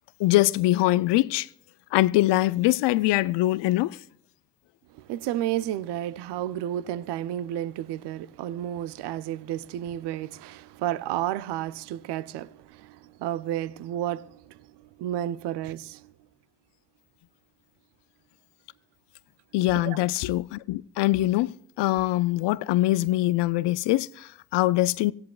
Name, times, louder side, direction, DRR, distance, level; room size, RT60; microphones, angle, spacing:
voice 1, 0.2-1.5 1.9-4.0 19.5-25.1, left 17 dB, 75° left, 0.6 m, -23 dB
voice 2, 4.9-14.7 15.0-16.1 19.7-20.0, right 12 dB, 70° right, 0.6 m, -32 dB
25.0 x 16.5 x 2.4 m
hypercardioid pair, 40°, 43 cm